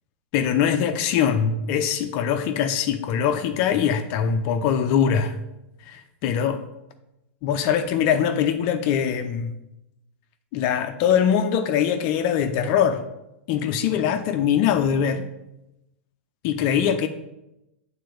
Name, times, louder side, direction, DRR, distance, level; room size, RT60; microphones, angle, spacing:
voice 1, 0.3-5.4 5.9-6.6 7.4-9.5 10.5-13.0 13.5-15.3 16.4-17.1, left 8 dB, 50° left, 0.7 m, -22 dB
7.6 x 4.1 x 6.9 m
hypercardioid pair, 100°, 7 cm